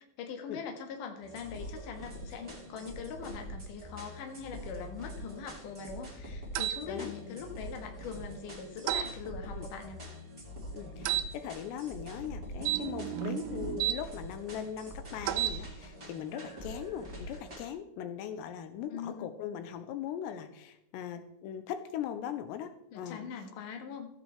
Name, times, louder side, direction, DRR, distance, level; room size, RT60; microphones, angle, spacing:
voice 1, 0.2-10.0 18.9-19.3 22.9-24.1, left 6 dB, 60° left, 3 dB, 2.6 m, -42 dB
sound 1, 1.2-17.7, equal, 20° right, 1.4 m, -45 dB
sound 2, 6.6-6.8 8.9-9.1 11.1-11.3 12.6-14.0 15.2-15.6, right 14 dB, 85° right, 2.2 m, -31 dB
voice 2, 6.9-7.4 9.5-9.7 10.7-23.2, left 9 dB, 85° left, 9 dB, 2.8 m, -40 dB
14.5 x 10.0 x 3.3 m, 0.81 s
omnidirectional pair, 4.9 m